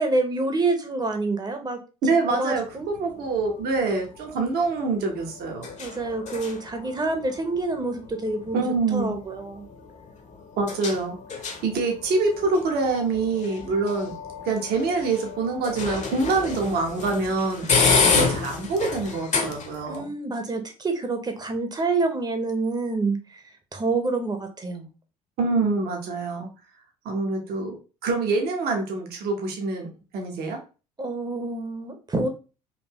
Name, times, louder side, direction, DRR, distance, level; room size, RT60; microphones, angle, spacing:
voice 1, 0.0-1.8 2.4-2.9 5.8-8.6 8.9-9.7 19.9-23.4 23.7-24.9 31.0-32.3, right 3 dB, 20° right, 5 dB, 1.0 m, -27 dB
voice 2, 2.0-5.7 8.5-9.2 10.6-11.2 11.6-14.1 14.4-17.7 18.1-20.0 25.4-26.5 27.0-30.6, right 3 dB, 55° right, 2 dB, 1.2 m, -25 dB
sound 1, 2.5-20.0, left 4 dB, 35° left, 1.0 m, -30 dB
4.3 x 2.7 x 3.0 m, 0.33 s
hypercardioid pair, 60°, 19 cm